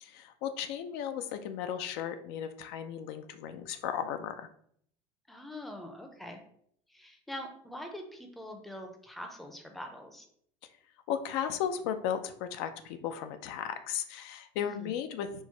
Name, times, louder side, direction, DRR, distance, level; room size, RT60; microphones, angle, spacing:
voice 1, 0.0-4.5 11.1-15.4, left 9 dB, 75° left, 9 dB, 0.5 m, -35 dB
voice 2, 5.3-6.4 6.9-10.3 14.6-15.0, left 1 dB, ahead, 3 dB, 0.5 m, -44 dB
4.4 x 2.0 x 4.4 m, 0.66 s
cardioid pair, 140°, 13 cm